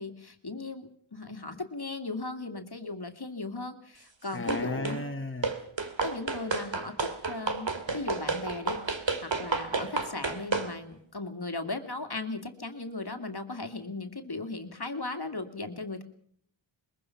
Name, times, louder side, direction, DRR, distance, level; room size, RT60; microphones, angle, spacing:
voice 1, 0.0-5.0 6.0-8.8 9.2-16.0, left 3 dB, 50° left, 6 dB, 2.4 m, -37 dB
voice 2, 4.3-5.5, left 2 dB, 25° left, 2 dB, 2.1 m, -34 dB
sound 1, 4.5-5.0 5.4-10.7, right 4 dB, 65° right, 2.6 m, -31 dB
22.5 x 22.0 x 5.8 m, 0.62 s
wide cardioid pair, 65°, 48 cm